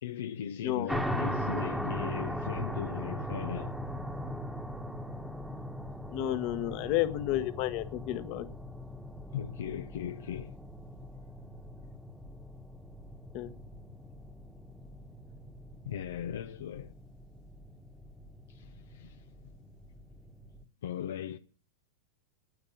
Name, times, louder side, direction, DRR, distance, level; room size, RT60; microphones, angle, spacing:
voice 1, 0.0-3.8 9.3-10.6 15.8-16.9 18.5-19.3 20.8-21.4, left 9 dB, 80° left, 0.7 m, -38 dB
sound 1, 0.9-20.6, equal, ahead, 1.3 m, -39 dB
voice 2, 6.1-8.5 13.3-13.5, left 14 dB, 50° left, 1.3 m, -31 dB
9.6 x 9.0 x 8.7 m
supercardioid pair, 135°, 0 cm